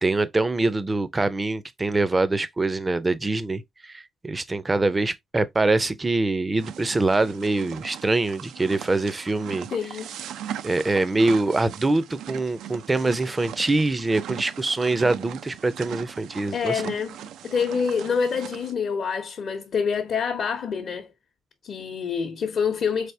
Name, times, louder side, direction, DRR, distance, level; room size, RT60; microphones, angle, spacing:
voice 1, 0.0-9.7 10.6-16.8, right 2 dB, 20° right, 0.5 m, -24 dB
sound 1, 6.6-18.7, right 10 dB, 80° right, 0.3 m, -39 dB
voice 2, 9.7-10.1 16.5-17.2 17.4-21.1 21.6-23.1, left 6 dB, 60° left, 0.7 m, -26 dB
4.0 x 3.4 x 2.7 m
cardioid pair, 90°, 0 cm